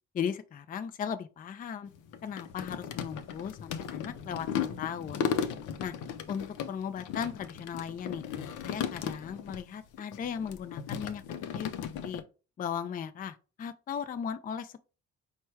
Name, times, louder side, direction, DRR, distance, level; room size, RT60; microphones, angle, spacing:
voice 1, 0.1-1.9 2.2-5.2 5.8-5.9 6.3-8.2 8.6-11.2 11.5-12.2 12.6-14.8, left 7 dB, 30° left, 0.4 m, -37 dB
sound 1, 1.9-9.6 9.9-12.2, left 8 dB, 85° left, 0.6 m, -36 dB
4.5 x 2.2 x 4.5 m
cardioid pair, 90°, 30 cm